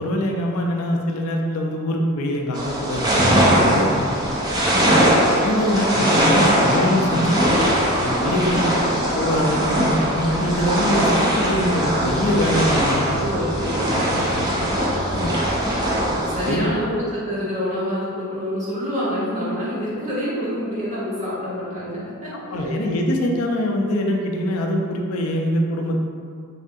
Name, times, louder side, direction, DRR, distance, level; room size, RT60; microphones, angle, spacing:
voice 1, 0.0-4.1 4.9-7.6 8.0-8.6 9.1-13.5 15.1-15.4 16.5-16.7 22.5-26.0, left 1 dB, 75° left, 1 dB, 0.4 m, -23 dB
sound 1, 2.5-16.5, equal, 20° right, 0.4 m, -20 dB
voice 2, 4.7-5.1 8.3-8.9 13.0-15.7 16.3-22.7, equal, 35° right, -10 dB, 1.1 m, -28 dB
3.4 x 2.3 x 2.6 m, 2.2 s
head